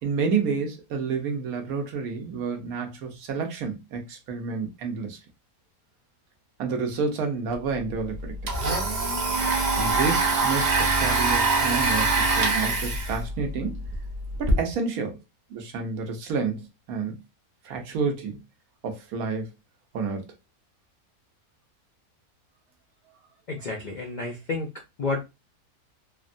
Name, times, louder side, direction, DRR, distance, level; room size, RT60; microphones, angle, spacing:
voice 1, 0.0-5.2 6.6-8.3 9.8-13.8 14.4-15.2 15.5-17.2 17.6-18.4 18.8-19.5 19.9-20.2, right 5 dB, 75° right, 1.2 m, -29 dB
Domestic sounds home sounds, 7.5-7.6 7.9-14.5, right 3 dB, 55° right, 0.5 m, -24 dB
voice 2, 23.5-24.7 25.0-25.3, left 3 dB, 65° left, 0.4 m, -30 dB
3.3 x 2.1 x 2.5 m
omnidirectional pair, 1.6 m